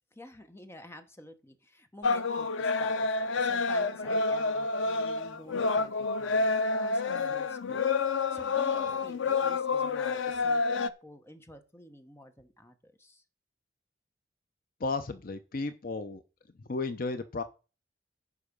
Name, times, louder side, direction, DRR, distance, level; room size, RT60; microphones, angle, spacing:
voice 1, 0.1-7.0 7.3-13.2, equal, 15° left, 8 dB, 1.0 m, -50 dB
sound 1, 2.0-10.9, left 4 dB, 90° left, 0.6 m, -28 dB
voice 2, 14.8-16.2 16.6-17.4, left 3 dB, 50° left, 11 dB, 0.6 m, -34 dB
9.7 x 5.6 x 5.2 m, 0.34 s
head